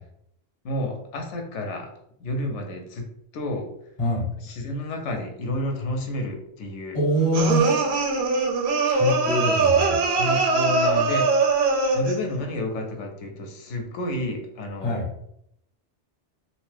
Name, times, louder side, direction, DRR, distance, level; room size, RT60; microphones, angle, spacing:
voice 1, 0.6-1.9 2.2-3.1 3.3-3.7 4.4-7.0 9.4-9.7 10.0-11.4 11.9-15.0, left 1 dB, 90° left, 2 dB, 0.9 m, -30 dB
voice 2, 4.0-4.3 6.9-7.7 8.8-10.0 14.8-15.1, equal, 35° left, -2 dB, 0.9 m, -24 dB
sound 1, 7.3-12.2, right 4 dB, 70° right, 0.8 m, -21 dB
2.7 x 2.1 x 3.1 m, 0.73 s
omnidirectional pair, 1.2 m